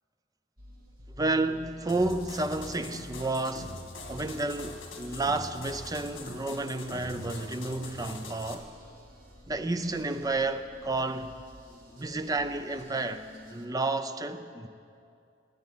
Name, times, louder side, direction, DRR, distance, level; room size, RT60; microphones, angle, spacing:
sound 1, 0.6-13.7, equal, 45° right, 1.9 m, -52 dB
voice 1, 1.2-3.8 4.1-8.7 9.5-11.4 12.0-13.2 13.5-14.7, right 2 dB, 20° right, 0.5 m, -31 dB
sound 2, 1.9-8.5, left 2 dB, 80° left, 1.9 m, -43 dB
17.0 x 9.5 x 7.3 m
head